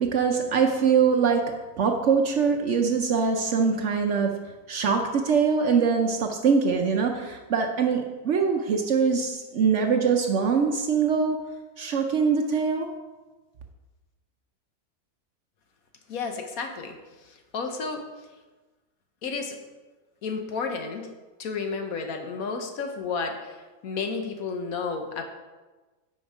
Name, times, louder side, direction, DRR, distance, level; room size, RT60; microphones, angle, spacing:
voice 1, 0.0-4.4 4.7-11.4 11.8-12.9, right 6 dB, 60° right, 4 dB, 0.8 m, -23 dB
voice 2, 16.1-17.0 17.2-18.0 19.2-19.5 20.2-21.1 21.4-25.2, left 4 dB, 65° left, 5 dB, 1.3 m, -32 dB
8.7 x 5.4 x 4.9 m, 1.2 s
omnidirectional pair, 1.7 m